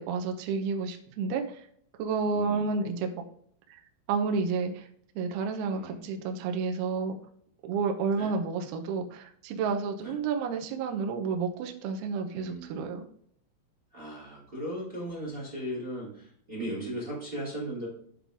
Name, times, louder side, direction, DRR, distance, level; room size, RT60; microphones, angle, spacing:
voice 1, 0.0-1.6 2.0-3.2 4.1-4.9 5.2-7.2 7.6-13.0, right 5 dB, 80° right, 4 dB, 2.2 m, -30 dB
voice 2, 2.3-2.7 5.7-5.9 8.1-8.3 10.0-10.1 12.3-12.8 13.9-17.9, right 1 dB, 25° right, -4 dB, 1.2 m, -37 dB
11.0 x 3.9 x 3.5 m, 0.65 s
omnidirectional pair, 5.7 m